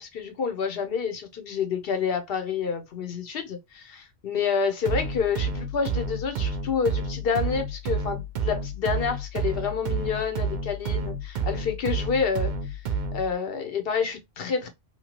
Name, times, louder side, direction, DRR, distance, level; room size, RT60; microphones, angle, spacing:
voice 1, 0.0-12.8 13.1-14.7, left 6 dB, 60° left, 0.9 m, -28 dB
sound 1, 4.8-13.3, right 4 dB, 55° right, 0.5 m, -30 dB
2.9 x 2.3 x 2.9 m
omnidirectional pair, 1.2 m